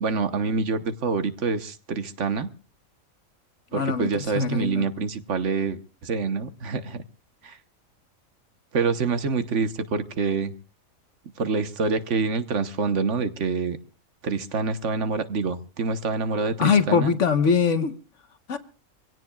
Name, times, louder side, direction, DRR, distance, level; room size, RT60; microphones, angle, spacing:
voice 1, 0.0-2.5 3.7-7.0 7.4-7.6 8.7-10.5 11.4-13.8 14.2-17.2, right 4 dB, 60° right, 1.4 m, -26 dB
voice 2, 3.7-4.1 4.3-4.9 16.6-17.9 18.5-18.6, left 6 dB, 60° left, 1.4 m, -22 dB
25.5 x 17.0 x 2.3 m
omnidirectional pair, 1.4 m